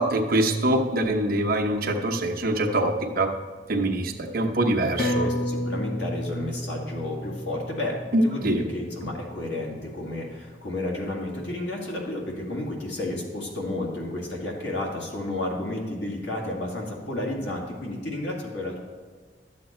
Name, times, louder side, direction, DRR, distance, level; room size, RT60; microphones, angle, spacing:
voice 1, 0.0-3.3 3.7-5.3 8.1-8.6, right 1 dB, 55° right, 3 dB, 1.0 m, -24 dB
voice 2, 4.8-18.8, left 1 dB, 80° left, -2 dB, 2.2 m, -32 dB
sound 1, 5.0-9.9 10.3-10.4, left 1 dB, 55° left, 1.1 m, -32 dB
12.0 x 7.7 x 4.4 m, 1.5 s
head